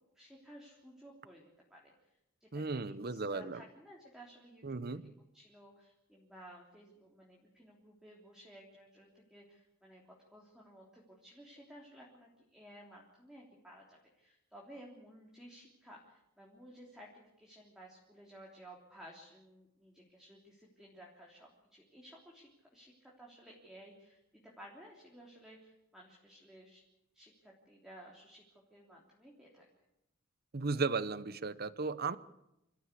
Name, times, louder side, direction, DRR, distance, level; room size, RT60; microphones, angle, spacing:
voice 1, 0.1-1.9 2.4-5.0 5.3-10.0 10.3-26.8 27.1-29.7, equal, 5° right, -3 dB, 3.4 m, -56 dB
voice 2, 2.5-3.6 4.6-5.1 30.5-32.2, right 4 dB, 45° right, 15 dB, 0.8 m, -35 dB
27.0 x 14.5 x 8.4 m, 0.87 s
head